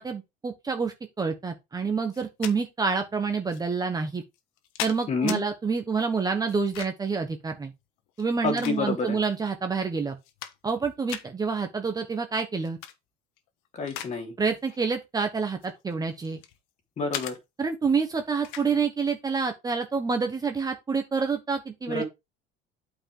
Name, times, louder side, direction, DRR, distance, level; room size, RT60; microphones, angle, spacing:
voice 1, 0.0-4.2 4.8-7.7 8.2-10.2 10.6-12.8 14.4-16.4 17.6-22.0, right 5 dB, 20° right, 1.2 m, -28 dB
sound 1, 2.1-2.6 3.5-3.6 4.3-5.4 6.5-7.1 8.1-9.2 9.7-9.8 10.1-10.8 11.1-11.3 12.6-13.0 13.4-14.2 14.5-14.7 15.5-16.6 17.1-17.4 18.4-18.7, left 11 dB, 80° left, 1.3 m, -37 dB
voice 2, 5.1-5.4 8.4-9.2 13.7-14.3 17.0-17.4 21.9-22.0, left 4 dB, 35° left, 3.3 m, -28 dB
8.6 x 5.1 x 3.8 m
cardioid pair, 140°, 21 cm